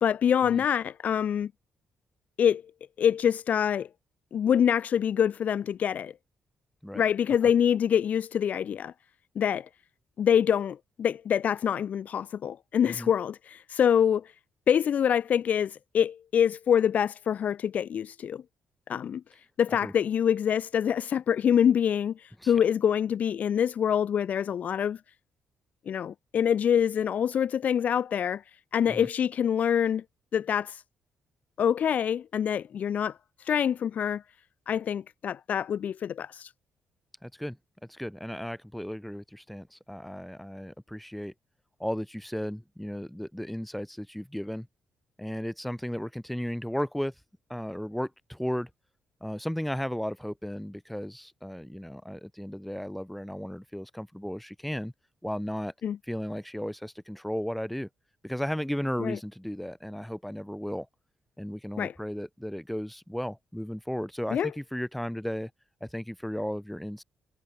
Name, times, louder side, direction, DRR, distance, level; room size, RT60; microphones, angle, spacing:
voice 1, 0.0-1.5 2.4-2.6 3.0-3.9 4.3-6.1 6.9-8.9 9.4-9.7 10.2-14.3 14.7-18.4 18.9-19.2 19.6-25.0 25.9-28.4 28.7-30.0 30.3-30.8 31.6-34.2 34.7-36.5 55.8-56.0 59.0-59.2 61.8-61.9 64.3-64.5, left 8 dB, 50° left, 0.9 m, -25 dB
voice 2, 37.2-37.6 37.9-41.3 41.8-44.7 45.2-47.1 47.5-48.7 49.2-54.9 55.2-55.7 56.1-57.9 58.2-60.9 61.4-65.5 65.8-67.0, equal, ahead, 7.2 m, -35 dB
cardioid pair, 150°, 3 cm